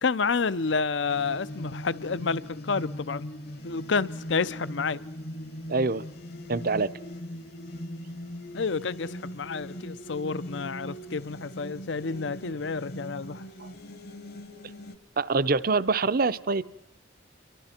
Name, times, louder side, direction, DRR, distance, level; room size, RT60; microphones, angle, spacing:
voice 1, 0.0-3.3 3.6-5.0 8.5-13.4, left 4 dB, 75° left, 0.7 m, -29 dB
sound 1, 1.1-15.0, equal, 60° left, 1.2 m, -40 dB
voice 2, 5.7-6.0 6.5-6.9 13.6-13.7 15.2-16.6, right 3 dB, 50° right, 0.7 m, -25 dB
29.5 x 23.5 x 4.4 m
head